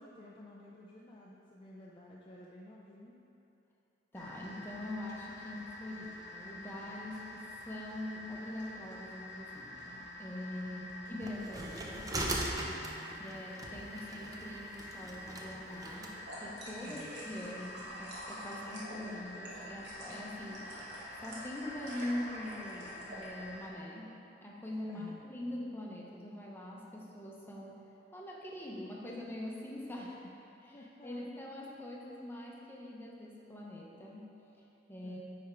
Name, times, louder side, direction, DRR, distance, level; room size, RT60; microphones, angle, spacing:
voice 1, 0.0-3.2 10.7-10.9 12.7-13.4 16.8-17.1 24.9-25.2 30.0-30.1 30.7-31.5 35.0-35.2, left 1 dB, 25° left, -4 dB, 0.4 m, -52 dB
sound 1, 4.1-23.7, left 2 dB, 65° left, 1.1 m, -48 dB
voice 2, 4.1-12.1 13.2-20.8 21.1-27.8 28.1-30.1 31.0-34.3 34.6-35.2, left 1 dB, 10° left, -3 dB, 0.8 m, -43 dB
sound 2, 11.2-16.1, right 1 dB, 20° right, 0.6 m, -40 dB
sound 3, 15.8-23.3, equal, 65° right, 1.5 m, -47 dB
9.8 x 3.5 x 4.5 m, 2.9 s
head